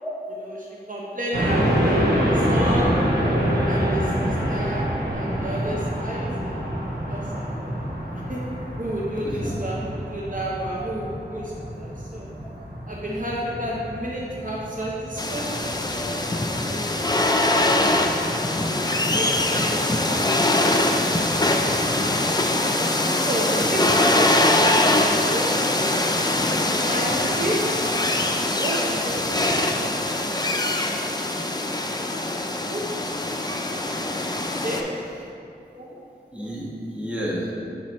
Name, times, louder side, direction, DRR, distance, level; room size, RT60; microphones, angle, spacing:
voice 1, 0.3-3.0 3.6-4.8 5.1-8.4 8.8-12.3 12.9-16.2 16.6-17.9 18.6-20.9 21.2-21.6 21.9-22.2 23.2-26.0 26.9-27.6 28.3-30.8 31.0-31.1 31.5-32.8 34.6-34.8 35.7-36.0, right 1 dB, 50° right, -5 dB, 0.8 m, -32 dB
sound 1, 1.3-18.0, equal, 70° right, 1.1 m, -26 dB
sound 2, 15.2-34.8, left 1 dB, 25° left, 0.5 m, -22 dB
voice 2, 36.3-37.5, equal, 5° right, -7 dB, 1.5 m, -31 dB
6.5 x 5.8 x 3.1 m, 2.5 s
wide cardioid pair, 50°, 17 cm